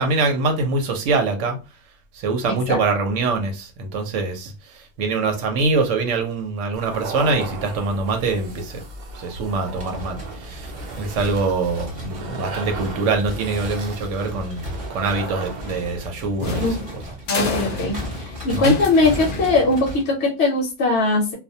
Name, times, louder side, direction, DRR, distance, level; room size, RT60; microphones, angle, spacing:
voice 1, 0.0-1.6 2.1-4.5 5.0-8.8 9.1-14.6 14.9-16.7 18.6-18.8, right 3 dB, 90° right, 0.9 m, -24 dB
voice 2, 2.5-2.8 16.6-16.8 17.3-21.3, left 3 dB, 70° left, 0.8 m, -20 dB
sound 1, 6.7-16.1, right 3 dB, 60° right, 0.5 m, -35 dB
sound 2, 9.6-20.0, right 1 dB, 30° right, 0.9 m, -36 dB
sound 3, 15.6-20.1, left 3 dB, 55° left, 0.5 m, -30 dB
2.3 x 2.1 x 2.6 m
omnidirectional pair, 1.2 m